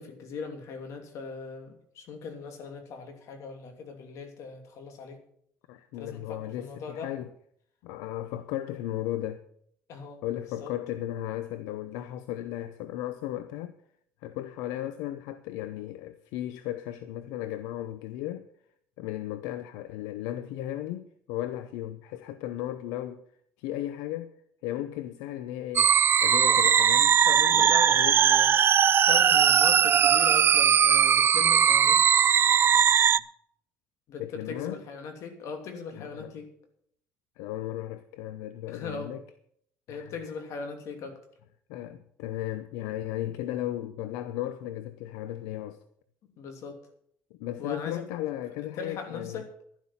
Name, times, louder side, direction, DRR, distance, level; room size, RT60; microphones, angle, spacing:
voice 1, 0.0-5.2 6.0-7.1 9.9-10.2 10.6-10.7 26.5-26.6 27.2-28.6 29.1-32.0 34.1-36.5 38.7-39.2 39.9-41.2 46.4-46.8 47.6-48.0 48.8-49.4, left 5 dB, 65° left, 2.9 m, -39 dB
voice 2, 5.7-7.3 7.8-9.4 10.2-13.7 14.2-18.5 19.0-23.2 23.6-24.3 24.6-25.9 26.2-27.1 27.5-28.2 34.2-34.8 35.9-36.3 37.4-39.2 39.9-40.1 41.7-45.8 47.4-49.4, left 13 dB, 85° left, 0.7 m, -35 dB
sound 1, 25.8-33.2, right 8 dB, 40° right, 0.4 m, -20 dB
11.5 x 11.5 x 5.7 m
supercardioid pair, 90°, 6 cm